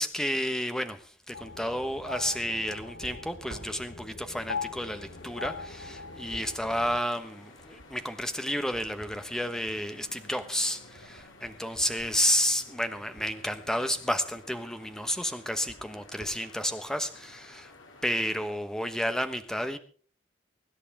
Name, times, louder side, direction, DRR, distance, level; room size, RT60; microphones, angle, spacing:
voice 1, 0.0-17.7 18.0-19.8, equal, 5° left, 1.1 m, -31 dB
sound 1, 1.3-7.0, left 4 dB, 55° left, 1.0 m, -41 dB
sound 2, 2.8-13.4 14.2-14.6 14.9-16.4, right 1 dB, 85° right, 4.9 m, -52 dB
sound 3, 4.3-18.5, left 2 dB, 80° left, 2.9 m, -53 dB
24.5 x 11.0 x 3.6 m
head